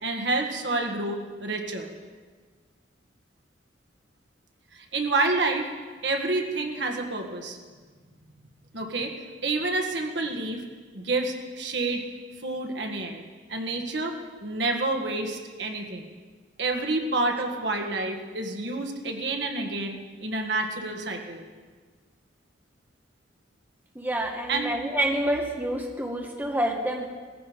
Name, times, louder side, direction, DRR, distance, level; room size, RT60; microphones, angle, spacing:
voice 1, 0.0-1.9 4.7-5.7 6.0-7.6 8.7-10.6 10.9-12.0 12.4-13.2 13.5-16.1 16.6-21.4 24.5-24.8, right 2 dB, 65° right, 3 dB, 1.7 m, -29 dB
voice 2, 23.9-27.1, right 1 dB, 10° right, 1 dB, 1.4 m, -28 dB
18.0 x 15.0 x 5.1 m, 1.5 s
head